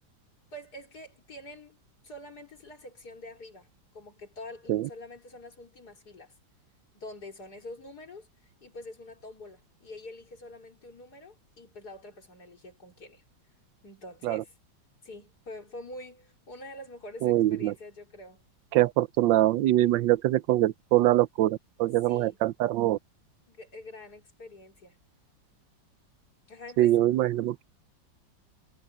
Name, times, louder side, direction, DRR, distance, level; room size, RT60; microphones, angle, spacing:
voice 1, 0.5-3.7 3.9-6.3 6.9-8.3 8.6-13.2 13.8-14.5 15.0-18.4 22.1-22.4 23.5-25.0 26.5-27.0, left 1 dB, 55° left, 4.4 m, -46 dB
voice 2, 17.2-17.7 18.7-23.0 26.8-27.6, right 15 dB, 85° right, 1.3 m, -23 dB
omnidirectional pair, 2.0 m